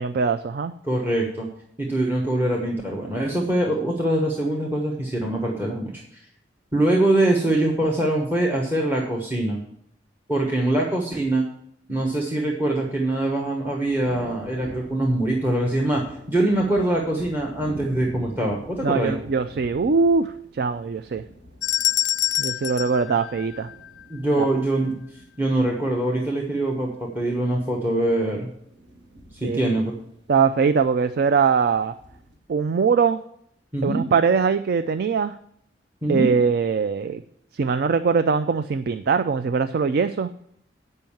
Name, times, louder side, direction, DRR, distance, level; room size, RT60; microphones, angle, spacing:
voice 1, 0.0-0.7 18.8-21.2 22.4-23.7 24.4-24.5 29.4-29.6 30.3-31.9 32.5-33.2 33.8-35.3 36.1-37.2 37.5-40.3, right 5 dB, 60° right, 11 dB, 0.4 m, -22 dB
voice 2, 0.8-1.5 1.8-6.2 6.7-9.6 10.3-11.5 11.9-19.2 24.1-25.0 25.4-28.5 29.3-29.9 33.7-34.0 36.0-36.3, right 1 dB, 10° right, 0 dB, 1.1 m, -23 dB
sound 1, 13.8-32.4, right 2 dB, 85° right, 2.0 m, -46 dB
sound 2, 21.6-24.0, left 12 dB, 80° left, 0.4 m, -26 dB
9.1 x 5.5 x 7.1 m, 0.70 s
head